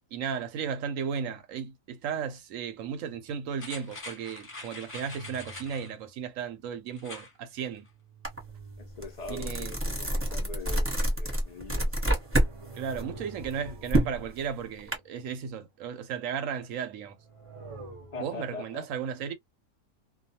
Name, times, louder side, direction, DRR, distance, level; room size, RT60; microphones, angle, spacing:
voice 1, 0.1-7.9 9.3-9.8 12.7-17.2 18.2-19.3, right 7 dB, 70° right, 0.9 m, -35 dB
sound 1, 3.1-3.4 4.6-6.1 7.5-9.8 10.5-15.6 16.9-18.6, right 3 dB, 40° right, 0.5 m, -49 dB
sound 2, 3.6-5.9 6.9-7.3 7.7-7.8, left 2 dB, 25° left, 0.9 m, -44 dB
sound 3, 8.2-8.4 8.8-12.5 12.9-14.9, right 1 dB, 10° right, 0.8 m, -27 dB
voice 2, 8.8-12.2 18.1-18.9, left 4 dB, 75° left, 0.3 m, -42 dB
2.3 x 2.2 x 2.7 m
omnidirectional pair, 1.6 m